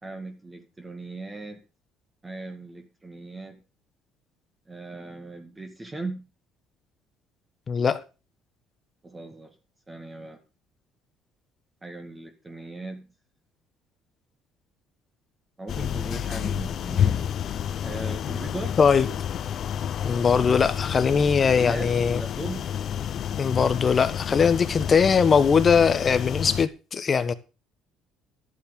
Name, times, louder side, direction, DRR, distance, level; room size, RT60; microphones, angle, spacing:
voice 1, 0.0-1.6 2.2-3.6 4.7-6.3 9.0-9.6 9.9-10.4 11.8-13.1 15.6-17.2 17.8-18.8 21.6-22.7 24.6-24.9, right 2 dB, 15° right, 2.0 m, -38 dB
voice 2, 7.7-8.0 18.8-19.1 20.0-22.2 23.4-27.3, left 6 dB, 35° left, 1.2 m, -21 dB
sound 1, 15.7-26.7, left 9 dB, 55° left, 0.7 m, -29 dB
12.0 x 7.4 x 5.3 m
cardioid pair, 105°, 0 cm